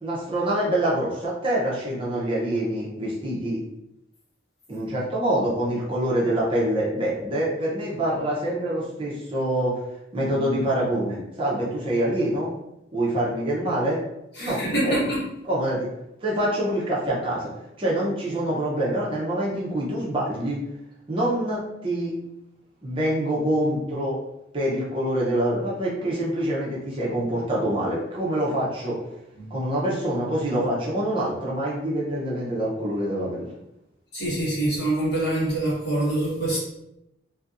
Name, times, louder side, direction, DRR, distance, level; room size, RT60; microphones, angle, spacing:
voice 1, 0.0-3.6 4.7-9.8 10.1-12.5 12.9-14.0 14.4-15.0 15.4-15.9 16.2-17.5 17.8-20.6 21.1-22.1 22.8-24.2 24.5-29.0 29.5-33.5, right 1 dB, 30° right, -5 dB, 0.7 m, -25 dB
voice 2, 14.4-15.2 34.1-36.6, right 1 dB, 60° left, -7 dB, 1.3 m, -25 dB
2.6 x 2.6 x 2.5 m, 0.87 s
head